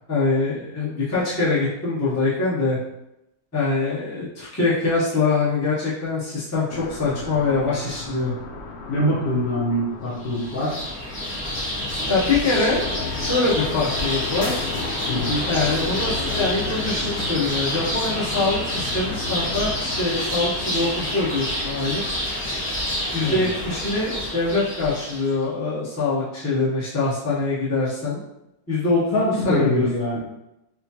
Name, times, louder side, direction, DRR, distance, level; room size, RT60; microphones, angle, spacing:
voice 1, 0.0-2.8 3.5-8.3 12.1-12.8 13.2-14.6 15.5-22.0 23.1-28.2 28.7-29.9, left 3 dB, 10° left, -9 dB, 0.8 m, -24 dB
sound 1, 6.7-21.4, left 5 dB, 85° left, 0.5 m, -35 dB
voice 2, 8.9-10.8 15.1-15.4 23.2-23.4 29.1-30.2, left 1 dB, 70° left, -6 dB, 1.7 m, -23 dB
sound 2, 10.2-25.3, left 1 dB, 35° left, 1.2 m, -28 dB
4.3 x 2.2 x 2.8 m, 0.88 s
omnidirectional pair, 1.7 m